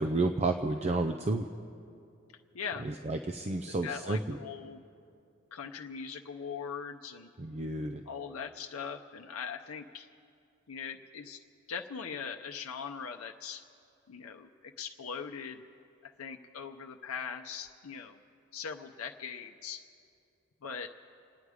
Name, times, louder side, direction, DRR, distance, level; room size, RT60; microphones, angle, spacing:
voice 1, 0.0-1.5 2.8-4.4 7.4-8.0, right 2 dB, 30° right, 6 dB, 0.5 m, -31 dB
voice 2, 2.5-2.9 3.7-4.8 5.5-7.3 8.0-10.1 10.7-11.4 11.7-13.6 14.1-15.7 16.0-18.2 18.5-19.8 20.6-20.9, left 6 dB, 90° left, 4 dB, 0.6 m, -41 dB
28.5 x 9.5 x 4.9 m, 2.5 s
head